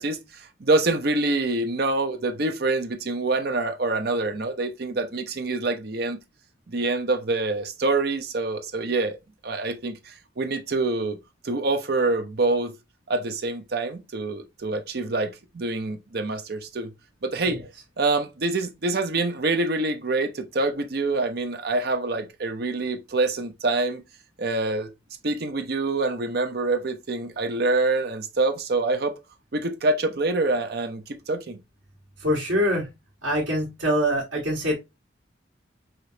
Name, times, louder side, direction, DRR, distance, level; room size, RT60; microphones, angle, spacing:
voice 1, 0.0-6.2 6.7-9.2 9.4-11.2 11.4-12.7 13.1-16.9 17.2-17.6 18.0-24.0 24.4-24.9 25.2-29.1 29.5-31.6, right 2 dB, 55° right, 0.7 m, -26 dB
voice 2, 32.2-32.9 33.2-34.7, equal, 85° right, 1.6 m, -24 dB
5.0 x 3.0 x 2.8 m
head